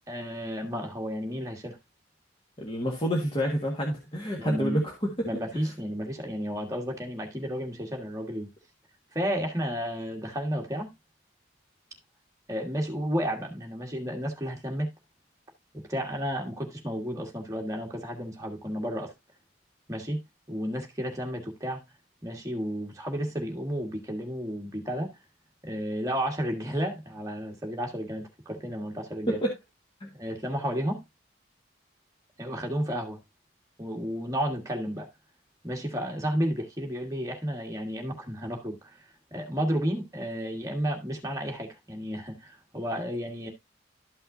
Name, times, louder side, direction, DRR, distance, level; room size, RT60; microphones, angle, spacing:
voice 1, 0.1-1.8 4.4-4.8 5.2-8.5 9.1-10.9 12.5-14.9 15.9-19.1 19.9-20.2 20.5-21.8 22.2-25.1 25.6-29.4 30.1-31.0 32.4-33.2 33.8-35.1 35.6-43.5, equal, 15° right, 1.5 m, -32 dB
voice 2, 2.6-4.9 29.3-29.5 30.0-30.1, equal, 25° left, 1.5 m, -28 dB
12.5 x 5.6 x 2.6 m
head